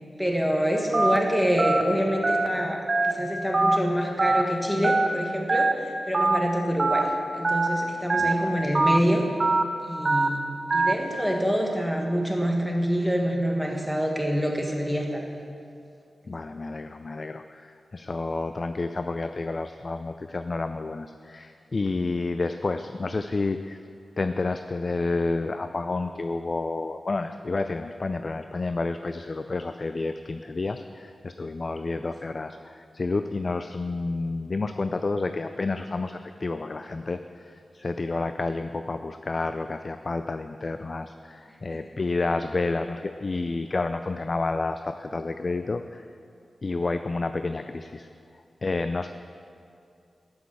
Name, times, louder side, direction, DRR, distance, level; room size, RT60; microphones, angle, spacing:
voice 1, 0.2-9.3 9.8-10.4 10.7-15.2 32.0-32.1 41.7-41.8, equal, ahead, 1 dB, 1.5 m, -26 dB
Telephone, 0.9-1.2 1.6-1.8 2.2-2.5 2.9-3.1 3.5-3.8 4.2-4.4 4.8-5.1 5.5-5.7 6.1-6.4 6.8-7.0 7.4-7.7 8.1-8.3 8.7-9.0 9.4-9.6 10.1-10.3 10.7-10.9, right 3 dB, 45° right, 0.6 m, -22 dB
voice 2, 8.2-8.5 16.3-23.8 24.2-46.1 46.6-48.1 48.6-49.1, left 3 dB, 45° left, 9 dB, 0.3 m, -30 dB
11.5 x 6.3 x 7.0 m, 2.5 s
wide cardioid pair, 75°, 0 cm